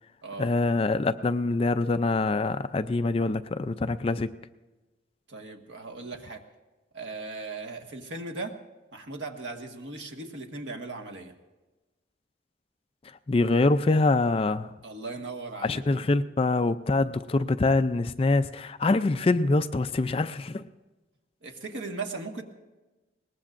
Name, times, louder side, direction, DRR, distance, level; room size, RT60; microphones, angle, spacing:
voice 1, 0.4-4.3 13.0-14.7 15.6-20.7, left 3 dB, 30° left, 11 dB, 0.4 m, -25 dB
voice 2, 5.3-6.4 6.9-8.6 8.9-11.3 14.8-16.0 21.4-22.4, right 3 dB, 90° right, 3 dB, 1.6 m, -38 dB
22.0 x 19.5 x 2.5 m, 1.2 s
head